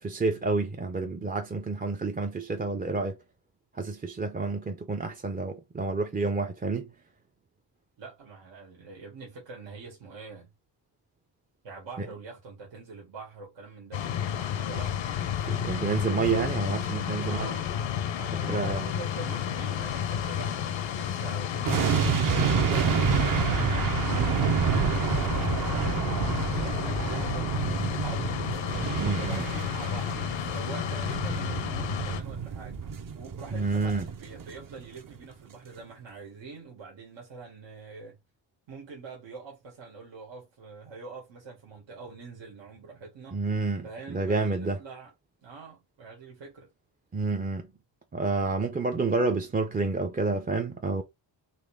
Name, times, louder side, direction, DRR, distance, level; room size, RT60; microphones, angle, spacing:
voice 1, 0.0-3.2 3.7-6.9 12.0-12.1 15.4-17.5 18.4-18.9 29.0-29.4 33.5-34.1 43.3-43.8 44.1-44.8 47.1-47.7 48.1-51.0, right 3 dB, 20° right, 0.5 m, -29 dB
voice 2, 8.0-10.5 11.6-15.0 17.2-17.7 18.1-28.3 29.0-32.8 33.2-38.2 38.7-43.4 43.8-45.1 45.4-46.7, right 4 dB, 85° right, 1.8 m, -44 dB
sound 1, 13.9-32.2, left 9 dB, 90° left, 0.8 m, -31 dB
sound 2, 21.6-34.8 35.1-35.2, right 7 dB, 45° right, 0.7 m, -29 dB
4.1 x 3.0 x 3.4 m
wide cardioid pair, 135°, 44 cm